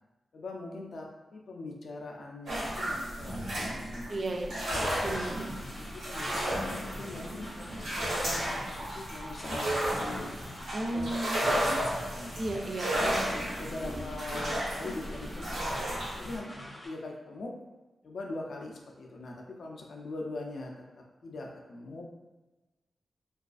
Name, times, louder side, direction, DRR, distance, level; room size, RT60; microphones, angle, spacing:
voice 1, 0.3-4.2 4.6-5.2 5.9-10.3 10.9-12.3 13.0-15.9 16.1-17.5 18.0-20.7 21.2-22.0, left 2 dB, 65° left, 0 dB, 0.4 m, -41 dB
sound 1, 2.5-16.4, right 1 dB, 90° right, 0.8 m, -33 dB
voice 2, 4.1-4.5 5.0-5.3 10.7-11.5 12.4-13.1, right 2 dB, 45° right, 1 dB, 0.3 m, -33 dB
sound 2, 5.0-16.9, left 1 dB, 25° left, 0.6 m, -46 dB
2.4 x 2.3 x 2.4 m, 1.1 s
wide cardioid pair, 130°, 0 cm